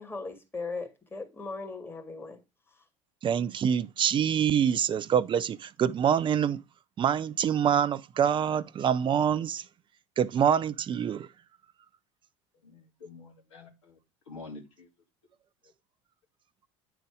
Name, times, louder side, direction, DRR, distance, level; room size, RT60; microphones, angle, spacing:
voice 1, 0.0-2.4, left 3 dB, 15° left, 2.0 m, -38 dB
voice 2, 3.2-6.6 7.0-9.7 10.2-11.3, right 8 dB, 30° right, 0.6 m, -25 dB
voice 3, 12.6-14.0 14.3-14.9, left 3 dB, 80° left, 2.4 m, -47 dB
9.3 x 4.1 x 4.9 m
hypercardioid pair, 75°, 16 cm